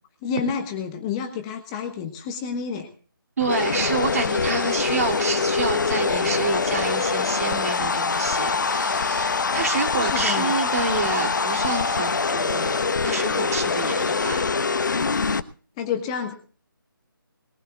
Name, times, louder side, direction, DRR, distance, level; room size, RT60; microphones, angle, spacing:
voice 1, 0.2-2.9 10.0-10.5 15.8-16.3, left 6 dB, 15° left, 5 dB, 1.3 m, -29 dB
sound 1, 3.4-15.4, left 4 dB, 55° left, 1.1 m, -24 dB
voice 2, 3.4-14.5, right 4 dB, 45° right, 4 dB, 2.8 m, -28 dB
21.5 x 19.5 x 2.4 m, 0.40 s
figure-of-eight pair, 165°, 12 cm